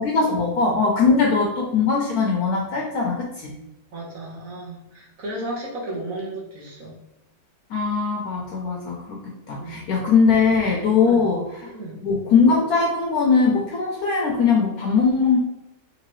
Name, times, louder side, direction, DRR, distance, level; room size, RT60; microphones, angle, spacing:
voice 1, 0.0-3.5 7.7-9.2 9.5-11.7 12.0-15.4, left 5 dB, 70° left, -1 dB, 1.1 m, -20 dB
voice 2, 3.9-6.9 9.6-9.9 10.9-11.3 11.7-12.0, right 1 dB, 60° right, -4 dB, 1.5 m, -34 dB
3.8 x 3.1 x 3.0 m, 0.88 s
omnidirectional pair, 1.7 m